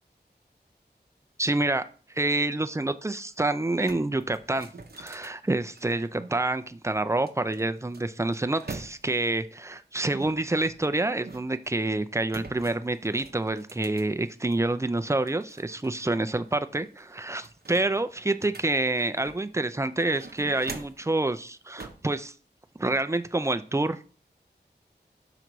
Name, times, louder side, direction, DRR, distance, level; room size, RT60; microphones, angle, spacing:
voice 1, 1.4-1.8 2.1-4.7 5.0-22.3 22.8-24.2, right 2 dB, 15° right, 11 dB, 0.4 m, -27 dB
sound 1, 3.2-3.3 3.6-6.4 7.3-9.3 10.1-11.7 12.3-14.7 15.1-16.2 16.5-16.6 17.0-19.6 20.0-21.1 21.8-22.1, right 3 dB, 60° right, 0.7 m, -44 dB
6.0 x 3.9 x 4.6 m, 0.39 s
wide cardioid pair, 60°, 18 cm